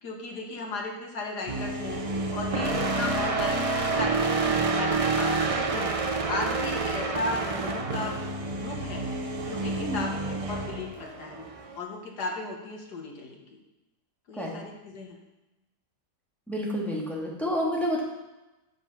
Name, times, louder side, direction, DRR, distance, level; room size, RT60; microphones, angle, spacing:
voice 1, 0.0-2.1 2.3-5.9 6.3-8.2 8.5-9.1 9.4-11.5 11.8-13.4 14.3-15.2, left 3 dB, 75° left, 1 dB, 2.1 m, -36 dB
sound 1, 1.5-11.8, right 3 dB, 60° right, 0.3 m, -28 dB
voice 2, 16.5-18.0, equal, ahead, -4 dB, 1.9 m, -29 dB
7.9 x 7.1 x 5.8 m, 1.0 s
omnidirectional pair, 1.8 m